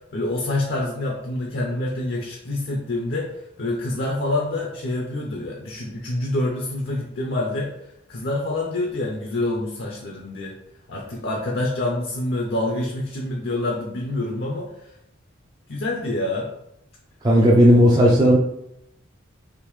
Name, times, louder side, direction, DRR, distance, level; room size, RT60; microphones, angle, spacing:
voice 1, 0.1-3.3 3.6-7.7 8.1-10.6 10.9-14.7 15.7-16.5 17.3-17.9, left 2 dB, 55° left, -1 dB, 0.5 m, -26 dB
voice 2, 17.2-18.4, equal, 20° right, -3 dB, 0.4 m, -14 dB
3.6 x 2.6 x 3.0 m, 0.79 s
head